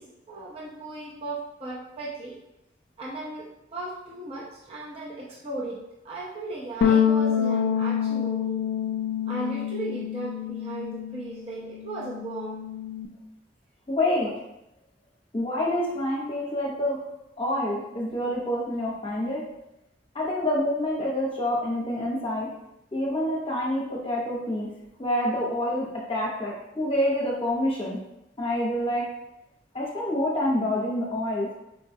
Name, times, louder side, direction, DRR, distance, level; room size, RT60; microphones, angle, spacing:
voice 1, 0.0-2.3 3.0-5.8 6.0-8.5 9.2-12.6, right 2 dB, 35° right, -5 dB, 0.5 m, -36 dB
sound 1, 6.8-11.4 11.6-13.1, left 8 dB, 75° left, 0.3 m, -26 dB
voice 2, 13.9-14.3 15.3-17.0 17.4-19.4 20.1-22.5 22.9-24.7 25.0-28.0 28.4-29.0 29.7-31.5, left 1 dB, 30° left, -4 dB, 0.8 m, -27 dB
4.5 x 2.2 x 2.7 m, 0.87 s
head